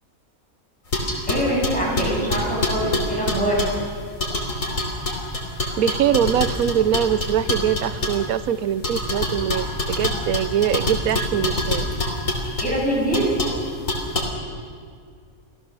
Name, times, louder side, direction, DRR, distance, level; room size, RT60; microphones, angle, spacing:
sound 1, 0.9-3.8 4.2-8.2 8.8-12.7 13.1-13.6 13.9-14.2, left 1 dB, 65° left, 3.4 m, -25 dB
voice 1, 1.3-3.6 12.6-13.3, right 1 dB, 5° left, -5 dB, 7.4 m, -23 dB
voice 2, 5.8-11.9, right 9 dB, 80° right, 15 dB, 1.2 m, -23 dB
26.0 x 15.5 x 6.8 m, 2.1 s
omnidirectional pair, 1.5 m